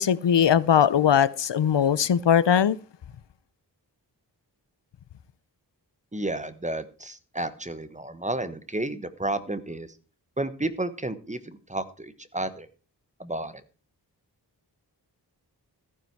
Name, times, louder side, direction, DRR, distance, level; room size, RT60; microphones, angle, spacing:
voice 1, 0.0-2.8, left 8 dB, 80° left, 0.7 m, -20 dB
voice 2, 6.1-9.9 10.4-12.7 13.2-13.5, right 1 dB, 15° right, 1.2 m, -31 dB
14.5 x 9.7 x 4.6 m
wide cardioid pair, 85°, 42 cm